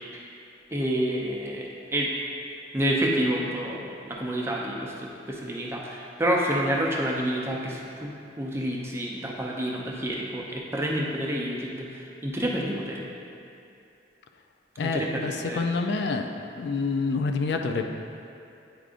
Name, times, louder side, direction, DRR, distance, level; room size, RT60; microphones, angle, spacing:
voice 1, 0.7-2.1 2.7-13.0 14.8-15.2 15.5-15.6, right 1 dB, 15° right, -2 dB, 0.5 m, -29 dB
voice 2, 14.8-16.3 16.6-17.8, left 4 dB, 65° left, 4 dB, 0.4 m, -27 dB
9.2 x 4.9 x 2.5 m, 2.6 s
head